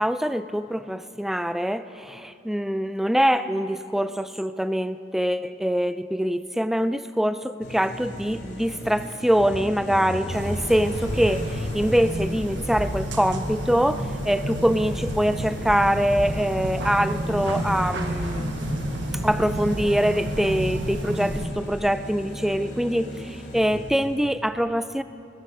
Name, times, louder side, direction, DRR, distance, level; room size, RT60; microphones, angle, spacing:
voice 1, 0.0-18.5 19.2-25.0, equal, ahead, 13 dB, 0.3 m, -24 dB
sound 1, 7.6-24.4, equal, 65° left, 2.6 m, -36 dB
sound 2, 10.3-21.5, right 1 dB, 80° right, 1.2 m, -30 dB
21.0 x 11.0 x 5.6 m, 2.7 s
head